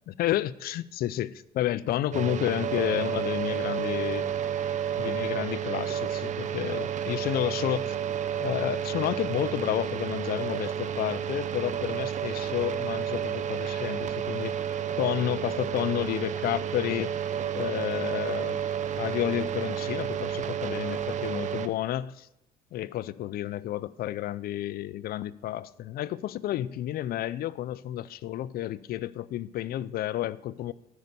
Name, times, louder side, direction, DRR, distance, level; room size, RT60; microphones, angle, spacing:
voice 1, 0.1-4.3 5.0-7.9 8.4-14.6 15.0-17.1 17.5-18.6 19.0-22.3 22.7-30.7, left 13 dB, 65° left, 0.5 m, -31 dB
sound 1, 2.1-21.7, right 9 dB, 45° right, 0.8 m, -31 dB
11.5 x 5.4 x 8.1 m
cardioid pair, 110°, 17 cm